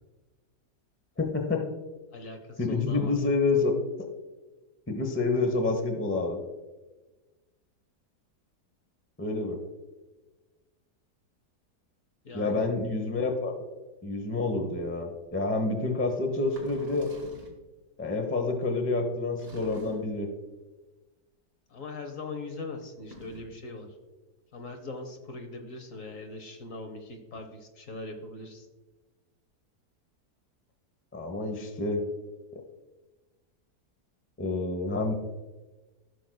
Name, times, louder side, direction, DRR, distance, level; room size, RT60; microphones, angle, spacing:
voice 1, 1.2-1.8 2.6-3.7 4.9-6.4 9.2-9.6 12.3-13.6 14.0-17.1 18.0-20.3 31.1-32.0 32.5-32.6 34.4-35.1, left 3 dB, 10° left, 3 dB, 0.6 m, -28 dB
voice 2, 2.1-3.1 12.2-12.7 21.7-23.9 24.5-28.7, left 3 dB, 55° left, 5 dB, 1.3 m, -40 dB
sound 1, 16.4-17.7 19.4-20.3 22.9-23.6, equal, 40° right, 1.5 m, -47 dB
15.5 x 6.1 x 2.2 m, 1.2 s
omnidirectional pair, 1.7 m